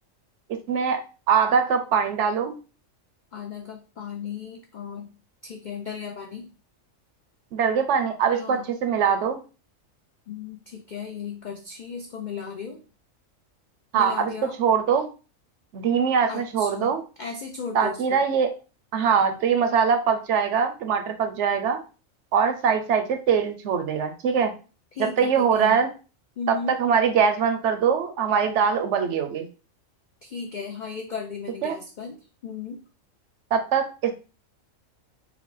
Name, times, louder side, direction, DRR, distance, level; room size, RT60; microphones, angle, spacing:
voice 1, 0.7-1.0 1.3-2.6 7.5-9.4 13.9-15.1 15.7-17.0 17.7-18.5 18.9-21.8 22.3-24.5 25.0-25.9 26.5-29.5 31.6-31.7 33.5-34.1, right 6 dB, 70° right, 7 dB, 0.8 m, -22 dB
voice 2, 3.3-5.1 5.4-6.5 8.3-8.7 10.3-12.8 13.9-14.6 16.3-18.2 24.9-25.8 26.4-26.8 30.2-32.8, left 6 dB, 70° left, 3 dB, 0.4 m, -36 dB
4.3 x 2.1 x 4.0 m, 0.34 s
omnidirectional pair, 1.4 m